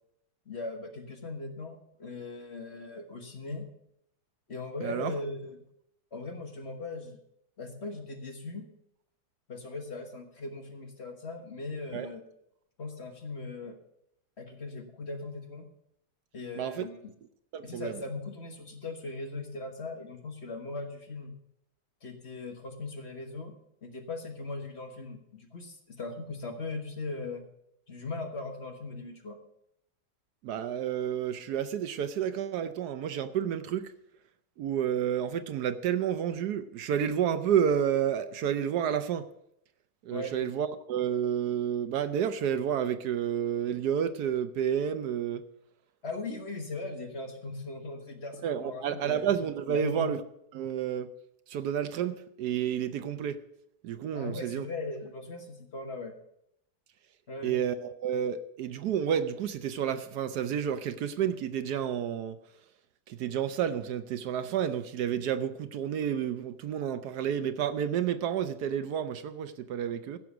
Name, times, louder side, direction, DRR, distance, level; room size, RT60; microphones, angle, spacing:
voice 1, 0.5-3.7 4.5-5.6 6.1-7.2 7.6-8.7 9.5-12.2 12.8-13.8 14.4-15.7 16.3-17.1 17.6-21.3 22.0-23.5 23.8-27.4 27.9-29.4 40.1-40.4 46.0-49.3 49.7-50.1 54.1-56.1 57.3-57.6, left 3 dB, 40° left, 1.5 m, -39 dB
voice 2, 4.8-5.1 11.9-12.1 16.6-16.9 17.5-17.9 30.4-33.9 34.6-39.3 40.0-45.4 48.4-50.2 50.5-51.1 51.5-53.4 53.8-54.7 57.4-62.4 63.1-70.2, right 9 dB, 70° right, 1.2 m, -30 dB
15.5 x 6.3 x 6.0 m
omnidirectional pair, 1.8 m